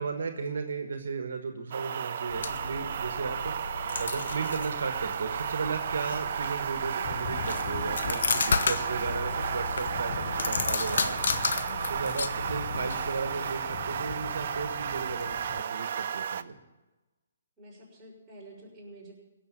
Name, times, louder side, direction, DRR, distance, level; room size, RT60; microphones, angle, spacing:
voice 1, 0.0-11.2 11.9-16.6, right 4 dB, 70° right, 6 dB, 1.4 m, -35 dB
sound 1, 1.7-16.4, right 8 dB, 55° right, 0.5 m, -33 dB
sound 2, 2.3-13.4, left 5 dB, 70° left, 0.9 m, -33 dB
Aircraft / Engine, 7.0-15.6, left 8 dB, 45° left, 0.6 m, -40 dB
voice 2, 17.6-19.1, right 1 dB, 10° right, -7 dB, 6.3 m, -49 dB
17.0 x 6.9 x 9.2 m, 1.2 s
hypercardioid pair, 145°, 0 cm